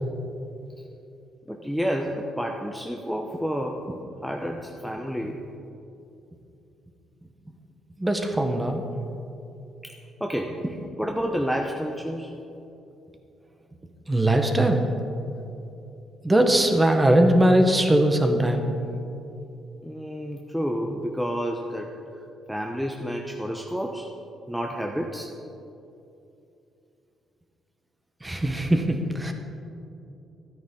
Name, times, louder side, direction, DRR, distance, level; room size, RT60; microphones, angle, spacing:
voice 1, 1.5-3.8 4.2-5.4 9.8-9.9 10.2-12.4 19.8-24.1 24.5-25.3, equal, ahead, 1 dB, 0.7 m, -30 dB
voice 2, 8.0-8.8 14.1-14.9 16.2-18.7 28.2-29.3, right 1 dB, 15° right, 4 dB, 1.1 m, -20 dB
13.0 x 9.3 x 3.8 m, 2.8 s
cardioid pair, 90°, 0 cm